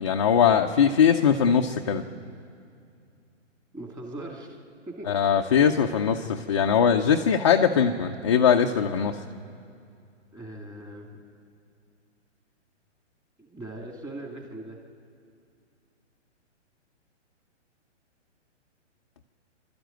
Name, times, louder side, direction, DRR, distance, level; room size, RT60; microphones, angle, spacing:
voice 1, 0.0-2.0 5.1-9.2, left 7 dB, 25° left, 2 dB, 0.4 m, -21 dB
voice 2, 3.7-4.6 4.9-5.2 10.3-11.2 13.4-14.8, right 1 dB, 10° right, 1 dB, 2.2 m, -40 dB
28.5 x 13.0 x 9.0 m, 2.4 s
hypercardioid pair, 160°, 37 cm